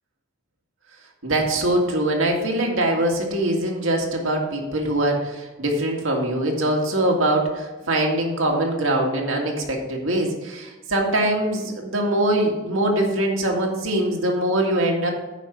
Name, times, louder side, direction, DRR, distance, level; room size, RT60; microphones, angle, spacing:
voice 1, 1.2-15.1, right 1 dB, 75° right, 0 dB, 1.9 m, -22 dB
9.2 x 5.5 x 5.7 m, 1.2 s
head